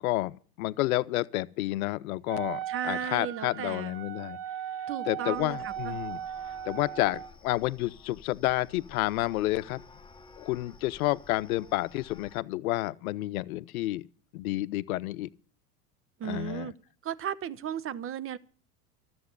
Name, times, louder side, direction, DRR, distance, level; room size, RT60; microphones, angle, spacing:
voice 1, 0.0-4.4 5.1-6.2 6.6-9.8 10.4-14.0 14.3-15.3 16.2-16.7, left 18 dB, 65° left, 0.7 m, -30 dB
Wind instrument woodwind instrument, 2.3-7.3, right 10 dB, 45° right, 1.3 m, -38 dB
voice 2, 2.7-3.9 4.9-5.9 16.2-16.7 17.0-18.4, right 9 dB, 30° right, 0.9 m, -35 dB
sound 1, 5.3-12.4, left 5 dB, 10° left, 1.1 m, -53 dB
13.0 x 7.8 x 9.5 m
hypercardioid pair, 85°, 46 cm